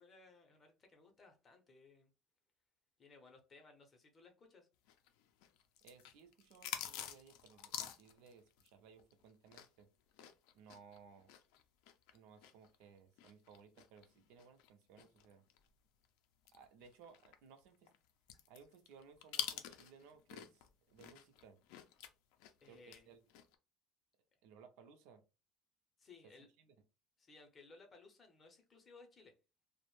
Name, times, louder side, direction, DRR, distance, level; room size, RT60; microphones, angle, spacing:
voice 1, 0.0-2.1 3.0-4.7 22.6-23.1 26.0-26.5 27.2-29.3, left 3 dB, 20° left, 0.6 m, -61 dB
sound 1, 4.9-9.8 10.1-15.7 16.0-16.1 16.5-20.7 21.0-23.0 23.3-23.5, left 10 dB, 75° left, 0.4 m, -48 dB
voice 2, 5.8-9.9 10.5-11.3 12.1-15.4 16.5-17.9 18.5-21.6 22.7-23.2 24.4-25.2 26.2-26.3 26.6-26.7, right 6 dB, 70° right, 0.4 m, -61 dB
2.5 x 2.0 x 3.0 m
cardioid pair, 170°, 0 cm